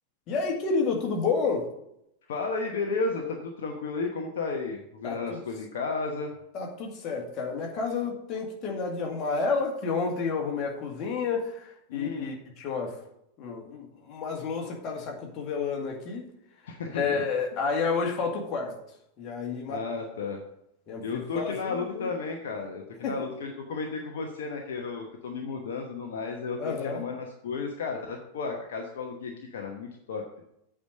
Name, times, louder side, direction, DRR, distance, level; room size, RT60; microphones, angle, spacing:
voice 1, 0.3-1.6 5.0-5.4 6.5-13.0 13.4-16.3 16.6-18.8 19.2-19.8 20.9-22.1 23.0-23.2 26.6-27.0, left 4 dB, 35° left, 0 dB, 2.0 m, -30 dB
voice 2, 2.3-6.3 11.9-12.3 16.7-17.2 19.7-20.4 21.0-30.2, left 4 dB, 60° left, 2 dB, 1.0 m, -33 dB
8.2 x 5.0 x 6.3 m, 0.79 s
figure-of-eight pair, 90°, 0 cm